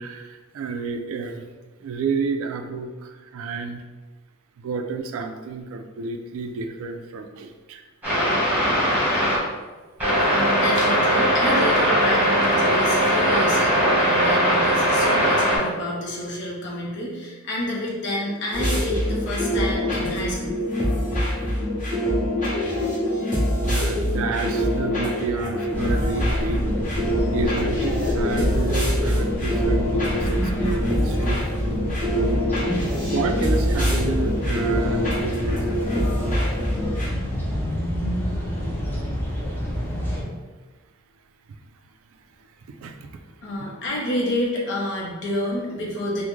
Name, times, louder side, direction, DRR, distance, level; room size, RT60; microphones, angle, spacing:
voice 1, 0.0-1.5 1.8-3.8 4.6-7.8 23.6-26.9 27.3-36.1 42.7-43.1, right 4 dB, 70° right, 6 dB, 0.3 m, -30 dB
sound 1, 8.0-9.4 10.0-15.6, equal, 10° right, 1.1 m, -20 dB
voice 2, 10.3-20.6 43.4-46.3, left 1 dB, 55° left, -4 dB, 0.6 m, -29 dB
sound 2, 18.5-37.1, equal, 35° left, 1.1 m, -24 dB
sound 3, 25.7-40.2, equal, 10° left, 0.5 m, -28 dB
3.5 x 2.1 x 3.1 m, 1.3 s
head